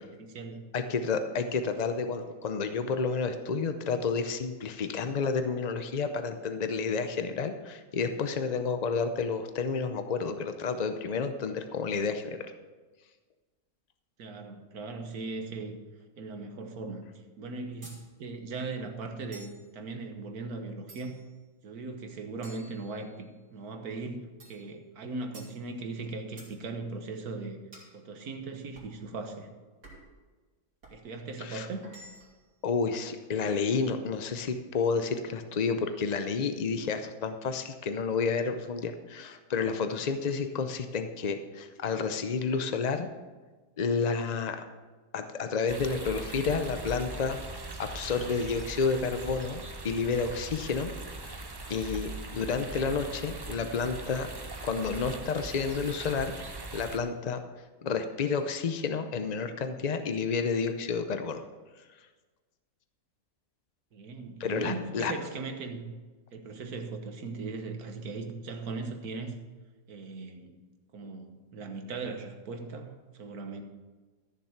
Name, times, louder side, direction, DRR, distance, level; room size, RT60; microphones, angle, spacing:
voice 1, 0.2-0.6 14.2-15.8 16.2-17.1 17.4-17.9 18.2-21.2 21.6-27.6 27.9-29.5 30.9-31.9 63.9-65.9 66.3-69.3 69.9-70.6 70.9-73.6, right 3 dB, 70° right, 5 dB, 1.6 m, -38 dB
voice 2, 0.7-12.4 31.4-31.7 32.6-43.1 43.8-44.6 45.1-47.4 47.8-50.9 51.2-51.4 51.7-54.3 54.6-56.3 56.7-57.4 57.8-61.4 64.4-65.1, left 5 dB, 70° left, 8 dB, 0.3 m, -30 dB
sound 1, 17.8-18.1 19.3-19.7 20.9-21.3 22.4-23.3 24.4-24.7 25.3-25.6 26.4-26.6 27.7-28.0 28.7-29.0 29.8-30.2 30.8-31.0 31.8-32.4, right 1 dB, 85° right, 3.4 m, -51 dB
sound 2, 45.7-57.0, right 3 dB, 30° right, 0.4 m, -41 dB
13.5 x 6.9 x 5.8 m, 1.3 s
omnidirectional pair, 1.7 m